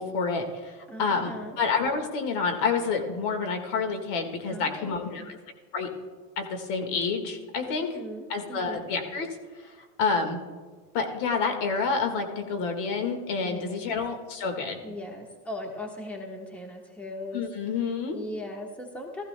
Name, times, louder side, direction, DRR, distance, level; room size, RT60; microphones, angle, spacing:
voice 1, 0.0-5.4 5.7-5.9 6.4-7.9 8.3-9.3 9.6-10.4 10.9-14.8 17.3-18.2, left 5 dB, 55° left, 5 dB, 1.8 m, -28 dB
voice 2, 0.9-1.6 4.5-5.4 7.7-8.8 13.4-13.9 14.8-17.4 18.1-19.2, left 1 dB, 5° left, 1 dB, 1.2 m, -39 dB
16.5 x 14.5 x 2.2 m, 1.4 s
supercardioid pair, 125°, 50 cm